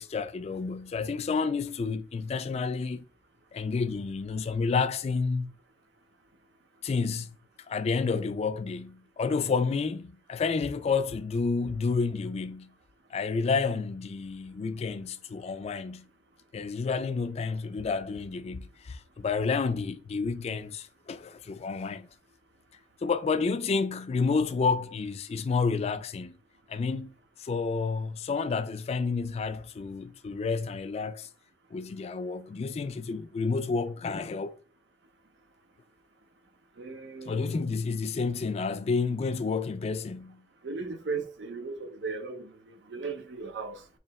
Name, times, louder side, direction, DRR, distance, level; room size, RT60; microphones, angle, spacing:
voice 1, 0.0-3.0 3.5-5.5 6.8-7.4 7.7-12.7 13.1-16.1 16.5-22.1 23.0-26.4 26.7-27.1 27.4-31.3 31.7-34.6 37.3-40.4, left 4 dB, 35° left, 0.3 m, -30 dB
voice 2, 36.7-37.6 40.6-43.9, right 4 dB, 75° right, 0.6 m, -37 dB
3.2 x 2.8 x 4.0 m
head